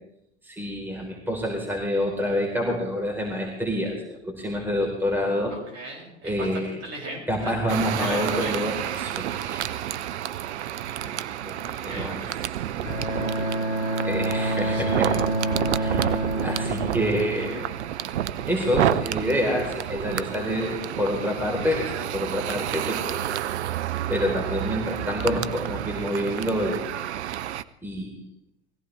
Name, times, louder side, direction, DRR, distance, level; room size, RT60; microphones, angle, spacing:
voice 1, 0.5-5.6 6.2-6.8 7.3-9.8 11.4-12.2 14.0-15.1 15.7-17.6 18.5-23.2 24.1-26.8 27.8-28.1, equal, 5° right, 0 dB, 4.2 m, -27 dB
voice 2, 5.7-7.6 8.0-8.5 11.0-11.1 11.9-12.1 14.5-14.8 15.4-15.8, right 2 dB, 45° right, -1 dB, 7.4 m, -36 dB
sound 1, 7.7-27.6, right 11 dB, 80° right, 0.6 m, -30 dB
Bowed string instrument, 12.8-17.9, right 1 dB, 90° left, 1.6 m, -28 dB
21.0 x 16.0 x 3.4 m, 0.77 s
hypercardioid pair, 80°, 33 cm